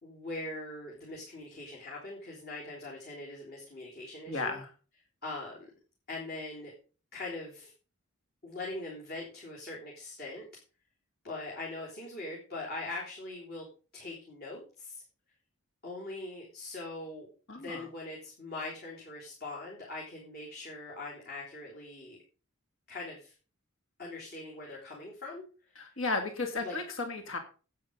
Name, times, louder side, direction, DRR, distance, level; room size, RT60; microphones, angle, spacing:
voice 1, 0.0-4.6 5.2-5.7 6.1-6.7 7.1-7.7 8.4-10.5 11.2-13.7 13.9-15.0 15.8-17.3 17.5-22.2 22.9-23.3 24.0-25.9 26.6-26.8, left 2 dB, 50° left, -3 dB, 3.6 m, -42 dB
voice 2, 4.3-4.7 17.5-17.8 25.8-27.4, left 3 dB, 65° left, 6 dB, 2.1 m, -34 dB
10.5 x 8.8 x 5.3 m, 0.36 s
head